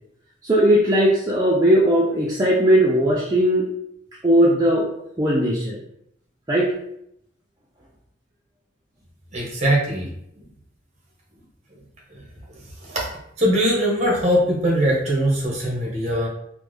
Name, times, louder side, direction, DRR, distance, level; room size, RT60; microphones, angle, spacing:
voice 1, 0.4-3.7 4.2-4.9 5.2-5.8 6.5-6.7, right 1 dB, 20° right, -5 dB, 0.4 m, -18 dB
voice 2, 9.3-10.5 12.1-12.2 12.5-13.1 13.4-16.3, equal, 35° right, -3 dB, 0.9 m, -22 dB
3.2 x 2.1 x 3.3 m, 0.75 s
head